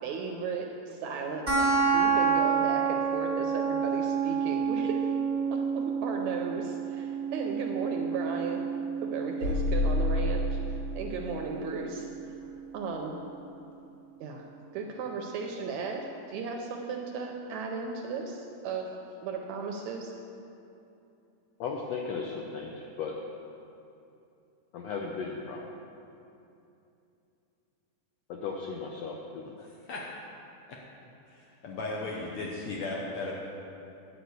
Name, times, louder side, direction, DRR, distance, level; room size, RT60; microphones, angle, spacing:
voice 1, 0.0-5.0 5.4-8.6 9.0-12.1 12.7-13.2 14.2-14.5 14.7-18.9 19.2-20.1, right 4 dB, 75° right, 2 dB, 1.7 m, -35 dB
sound 1, 1.5-12.4, right 6 dB, 40° right, 0.8 m, -29 dB
sound 2, 9.4-11.2, left 1 dB, 50° left, 2.4 m, -28 dB
voice 2, 21.6-23.1 24.7-25.7 28.3-29.7, left 5 dB, 90° left, 0 dB, 1.4 m, -36 dB
voice 3, 29.6-30.0 31.3-33.3, left 2 dB, 70° left, -3 dB, 1.9 m, -36 dB
10.0 x 5.1 x 7.9 m, 2.7 s
omnidirectional pair, 3.8 m